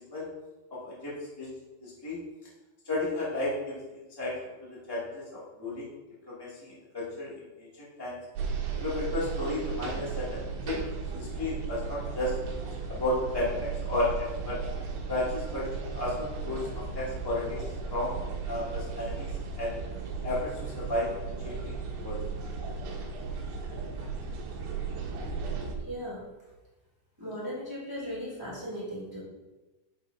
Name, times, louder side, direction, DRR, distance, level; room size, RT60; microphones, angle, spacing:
voice 1, 1.8-2.2 2.8-3.7 4.2-4.3 4.9-5.2 5.6-5.8 6.3-7.3 7.6-8.1 8.8-10.4 10.6-10.8 11.1-12.3 13.0-14.6 15.1-15.6 15.9-16.6 16.9-17.6 17.9-18.1 18.4-19.3 19.5-19.7 20.2-21.1 21.4-21.7 22.0-22.2, left 2 dB, 35° left, -8 dB, 0.3 m, -32 dB
sound 1, 8.4-25.8, right 5 dB, 75° right, 3.5 m, -35 dB
voice 2, 25.8-26.2 27.2-29.2, equal, 10° right, -7 dB, 1.5 m, -37 dB
10.5 x 7.0 x 2.8 m, 1.1 s
omnidirectional pair, 5.5 m